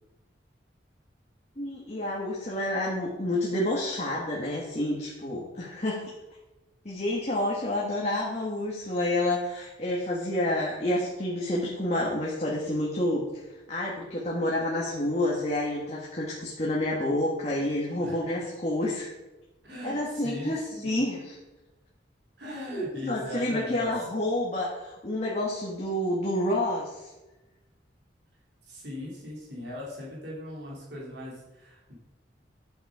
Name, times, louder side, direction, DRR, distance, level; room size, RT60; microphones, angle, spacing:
voice 1, 1.6-6.1 6.9-13.3 13.7-19.1 19.8-21.3 22.7-27.1, left 1 dB, 35° left, -4 dB, 1.8 m, -29 dB
voice 2, 18.0-18.4 19.6-21.0 22.4-23.9 28.6-31.9, left 1 dB, 65° right, -4 dB, 3.3 m, -39 dB
12.0 x 7.6 x 4.9 m, 1.1 s
head